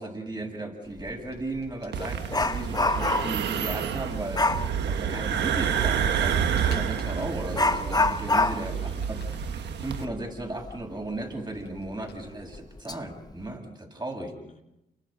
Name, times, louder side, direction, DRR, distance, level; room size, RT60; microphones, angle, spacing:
voice 1, 0.0-8.7 9.1-9.2 9.8-14.3, right 2 dB, 25° right, 8.0 m, -36 dB
Dog, 1.0-1.1 1.6-3.5 4.3-4.7 6.7-6.8 7.5-10.8 11.1-11.2 11.8-11.9 12.5-12.9 13.3-13.6, left 2 dB, 20° left, 1.2 m, -27 dB
sound 1, 1.2-2.2 5.2-5.3 5.8-7.5 8.0-9.5 9.9-12.6 12.9-13.0, left 5 dB, 90° left, 5.0 m, -51 dB
sound 2, 1.9-10.0, right 8 dB, 85° right, 1.3 m, -29 dB
voice 2, 2.6-3.1 8.5-9.3 14.2-14.6, left 4 dB, 50° left, 3.8 m, -50 dB
29.0 x 24.0 x 5.4 m
cardioid pair, 60°, 17 cm